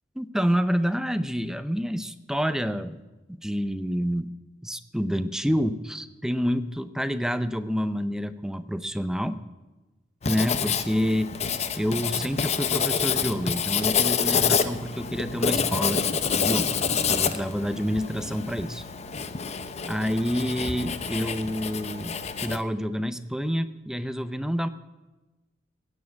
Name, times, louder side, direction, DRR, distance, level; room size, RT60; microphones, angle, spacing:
voice 1, 0.2-3.0 3.3-4.3 4.6-9.4 10.3-11.3 11.7-16.8 17.1-18.8 19.9-24.7, equal, 5° right, 12 dB, 0.5 m, -28 dB
Writing, 10.2-22.6, left 6 dB, 35° left, 0.7 m, -27 dB
16.5 x 7.3 x 8.4 m, 1.1 s
head